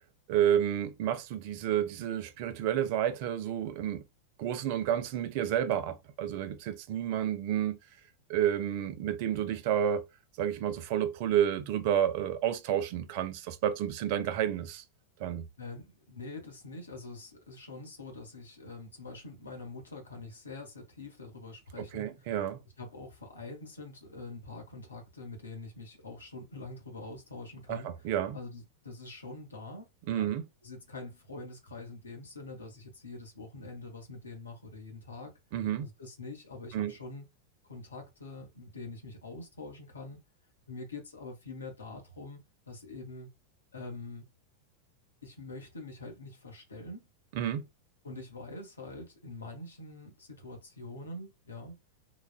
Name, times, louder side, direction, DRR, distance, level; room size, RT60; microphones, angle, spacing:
voice 1, 0.3-4.0 4.4-7.8 8.3-10.0 10.4-14.8 15.2-15.5 21.8-22.6 27.7-28.4 30.1-30.4 35.5-35.9 36.7-36.9 47.4-47.7, right 10 dB, 45° right, 0.5 m, -30 dB
voice 2, 15.6-22.3 22.8-30.3 30.6-35.3 35.8-37.3 37.6-40.2 40.7-42.4 42.7-43.3 43.7-44.3 45.2-47.1 48.0-51.8, left 2 dB, 75° left, 1.1 m, -45 dB
3.9 x 2.3 x 2.3 m
figure-of-eight pair, 90°, 0 cm